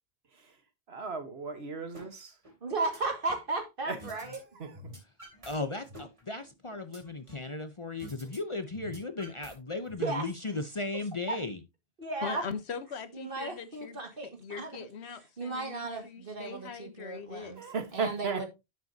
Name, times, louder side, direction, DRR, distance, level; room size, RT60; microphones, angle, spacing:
voice 1, 0.9-2.3 3.8-4.8 17.6-18.5, right 4 dB, 70° right, 1.6 m, -36 dB
sound 1, 1.9-2.1 2.4-3.5 4.0-4.4 4.7-5.5 5.9-7.5 8.0-8.4 8.7-9.9, equal, 30° right, 3.0 m, -48 dB
voice 2, 2.6-4.4 10.0-10.2 11.3-11.4 12.0-12.4 13.2-14.8 15.4-17.6 17.9-18.5, right 3 dB, 55° right, 2.2 m, -35 dB
voice 3, 5.5-11.6, left 3 dB, 30° left, 0.7 m, -36 dB
voice 4, 12.2-17.6, left 6 dB, 80° left, 1.3 m, -41 dB
10.5 x 7.2 x 2.8 m
omnidirectional pair, 1.1 m